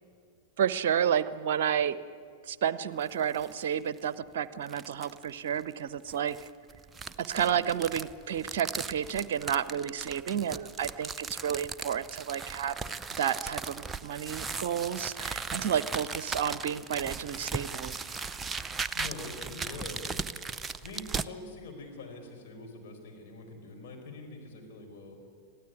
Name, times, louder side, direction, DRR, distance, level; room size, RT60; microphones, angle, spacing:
voice 1, 0.6-2.0 2.5-6.4 7.2-12.8 13.2-17.9, right 8 dB, 55° right, 17 dB, 0.7 m, -31 dB
sound 1, 3.0-3.5 4.0-4.1 4.7-5.2 6.1-21.3, right 4 dB, 15° right, 0.6 m, -38 dB
voice 2, 18.9-20.5 20.8-25.2, left 2 dB, 50° left, 1 dB, 4.7 m, -44 dB
22.5 x 14.5 x 9.7 m, 2.3 s
figure-of-eight pair, 90°, 0 cm